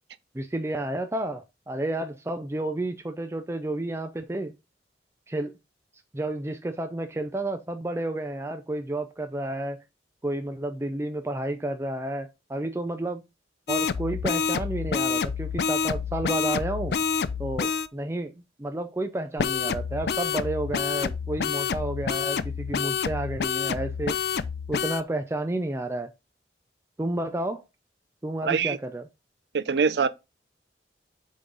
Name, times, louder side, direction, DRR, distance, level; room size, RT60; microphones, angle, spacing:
voice 1, 0.3-4.5 5.3-5.5 6.1-9.8 10.2-13.2 13.7-16.9 17.4-24.1 24.7-26.1 27.0-27.6 28.2-29.0, right 1 dB, 15° right, 0.4 m, -31 dB
sound 1, 13.7-17.9 19.4-25.0, left 6 dB, 65° left, 0.4 m, -28 dB
voice 2, 28.4-28.8 29.5-30.1, right 5 dB, 75° right, 0.5 m, -23 dB
6.8 x 3.7 x 3.8 m
head